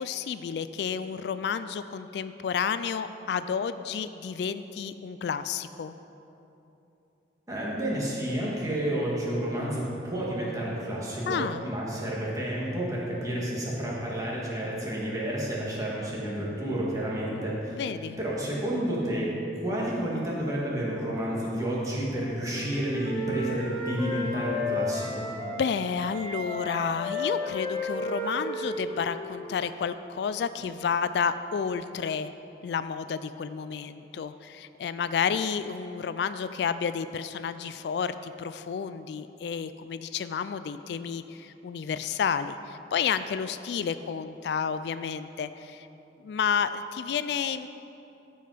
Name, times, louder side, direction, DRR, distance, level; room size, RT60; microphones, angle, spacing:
voice 1, 0.0-5.9 11.3-11.6 17.7-18.2 25.4-32.3 32.6-45.9 46.2-47.7, left 6 dB, 65° left, 12 dB, 0.3 m, -31 dB
voice 2, 7.5-17.8 18.2-25.3, right 1 dB, 20° right, -5 dB, 2.0 m, -30 dB
Wind instrument woodwind instrument, 22.1-25.6 26.0-29.7, left 2 dB, 30° left, 1.8 m, -33 dB
14.5 x 5.5 x 5.0 m, 2.9 s
head